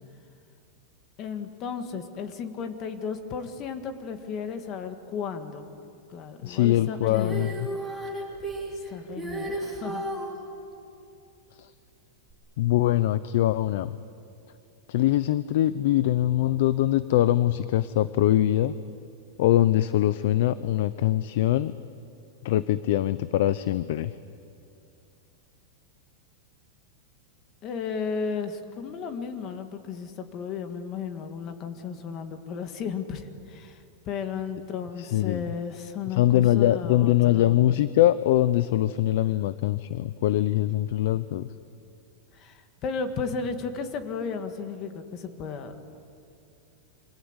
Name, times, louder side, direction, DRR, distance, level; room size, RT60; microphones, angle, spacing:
voice 1, 1.2-5.6 6.1-7.7 8.7-10.1 27.6-37.9 42.3-45.8, left 5 dB, 25° left, 7 dB, 1.8 m, -34 dB
voice 2, 6.4-7.7 11.6-11.7 12.6-14.0 14.9-18.7 19.4-21.7 22.4-24.1 35.0-35.4 36.2-41.5, left 13 dB, 50° left, 15 dB, 0.7 m, -23 dB
Female singing, 7.1-10.3 12.3-12.4, right 1 dB, ahead, 3.9 m, -33 dB
28.0 x 26.0 x 8.1 m, 2.5 s
supercardioid pair, 175°, 0 cm